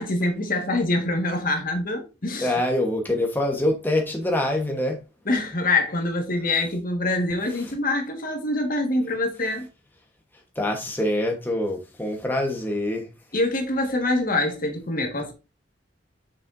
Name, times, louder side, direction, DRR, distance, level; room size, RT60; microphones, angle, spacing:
voice 1, 0.0-2.5 5.3-9.7 13.3-15.3, left 2 dB, 50° left, 1.6 m, -25 dB
voice 2, 2.4-5.0 7.5-7.8 10.5-13.1, left 1 dB, 10° left, 1.1 m, -25 dB
7.5 x 6.4 x 2.6 m
head